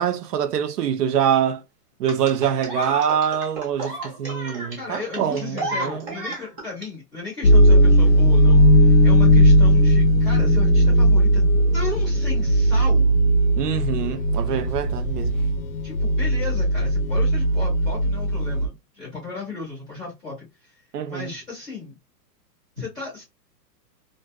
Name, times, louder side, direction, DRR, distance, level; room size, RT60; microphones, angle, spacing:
voice 1, 0.0-1.6 2.0-6.2 13.6-15.4 20.9-21.3, right 8 dB, 75° right, 0.6 m, -24 dB
sound 1, 2.1-6.9 8.1-8.2, right 1 dB, 20° right, 0.8 m, -32 dB
voice 2, 4.8-11.4 11.7-13.1 15.8-20.3 20.6-20.7 21.1-22.0 22.8-23.2, left 4 dB, ahead, 0.4 m, -35 dB
sound 2, 7.4-18.7, equal, 60° left, 0.6 m, -17 dB
2.4 x 2.4 x 2.3 m
hypercardioid pair, 160°, 48 cm